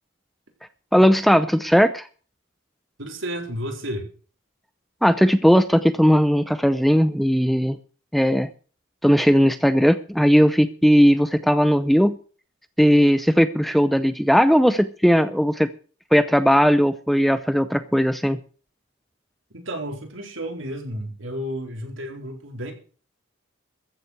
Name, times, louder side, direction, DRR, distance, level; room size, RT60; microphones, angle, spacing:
voice 1, 0.9-2.1 5.0-7.8 8.1-8.5 9.0-12.2 12.8-15.7 16.1-18.4, equal, ahead, 13 dB, 0.6 m, -18 dB
voice 2, 3.0-4.1 19.5-22.7, equal, 70° right, 3 dB, 4.2 m, -32 dB
14.5 x 7.5 x 8.1 m, 0.40 s
head